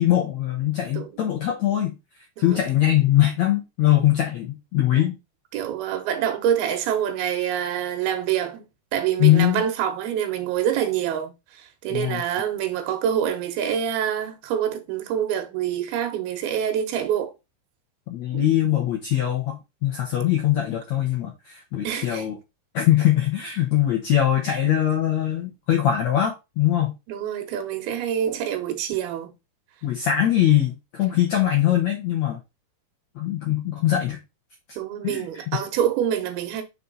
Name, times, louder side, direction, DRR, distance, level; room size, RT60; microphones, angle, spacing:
voice 1, 0.0-1.9 2.4-5.2 9.2-9.6 11.9-12.2 18.1-22.3 22.7-26.9 29.8-32.4 33.1-34.2 35.0-35.6, left 12 dB, 80° left, 1.6 m, -22 dB
voice 2, 5.5-8.7 8.9-17.3 18.3-18.4 21.8-22.2 24.5-24.6 27.1-29.3 34.8-36.6, right 9 dB, 75° right, 2.9 m, -26 dB
6.1 x 4.2 x 3.9 m
omnidirectional pair, 4.7 m